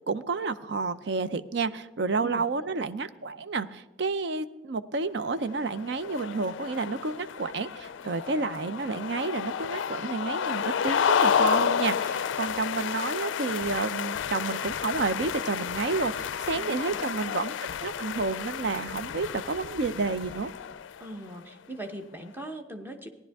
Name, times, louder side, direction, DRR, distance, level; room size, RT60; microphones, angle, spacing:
voice 1, 0.1-17.5 17.8-20.5, right 4 dB, 60° right, 13 dB, 0.5 m, -30 dB
sound 1, 5.5-21.2, left 7 dB, 75° left, 0.4 m, -31 dB
voice 2, 16.5-17.0 21.0-23.1, right 1 dB, 10° right, 5 dB, 0.9 m, -40 dB
16.0 x 10.5 x 3.5 m, 1.1 s
head